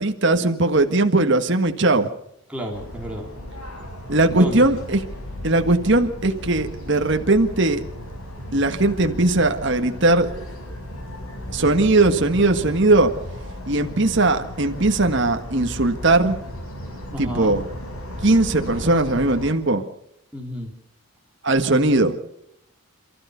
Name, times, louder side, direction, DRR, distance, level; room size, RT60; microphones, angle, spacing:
voice 1, 0.0-2.1 4.1-5.0 5.4-7.8 8.5-10.3 11.5-13.1 13.7-16.4 17.2-17.6 18.2-19.8 21.4-22.1, right 2 dB, 55° right, 6 dB, 1.7 m, -19 dB
voice 2, 2.5-3.3 4.4-4.7 17.1-17.6 20.3-20.7, equal, 5° right, -1 dB, 3.1 m, -31 dB
sound 1, 2.7-19.5, left 1 dB, 85° left, 5.5 m, -35 dB
28.5 x 14.0 x 6.9 m, 0.79 s
head